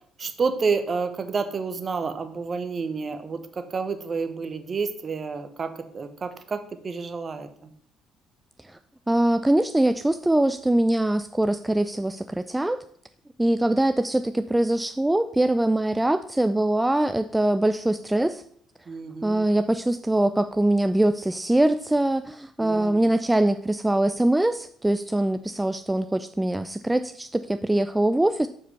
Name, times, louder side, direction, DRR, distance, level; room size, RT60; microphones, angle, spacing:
voice 1, 0.2-7.7 18.9-19.5 22.6-23.0, right 5 dB, 40° right, 9 dB, 1.0 m, -29 dB
voice 2, 9.1-12.8 13.4-18.4 19.2-28.5, right 1 dB, 10° right, 10 dB, 0.4 m, -23 dB
6.8 x 4.9 x 5.6 m, 0.64 s
hypercardioid pair, 50°, 0 cm